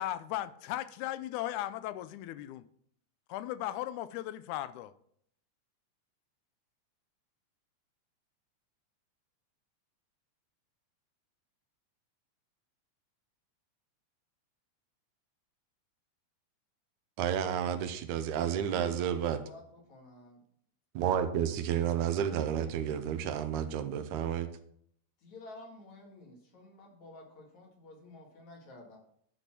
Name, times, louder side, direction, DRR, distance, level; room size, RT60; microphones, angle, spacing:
voice 1, 0.0-2.6 3.3-4.9, left 13 dB, 90° left, 2.0 m, -37 dB
voice 2, 17.2-19.4 21.0-24.5, right 9 dB, 90° right, 2.2 m, -31 dB
voice 3, 18.8-19.6 19.9-20.4 25.2-29.0, left 2 dB, 70° left, 3.3 m, -52 dB
10.5 x 4.2 x 6.1 m
omnidirectional pair, 3.4 m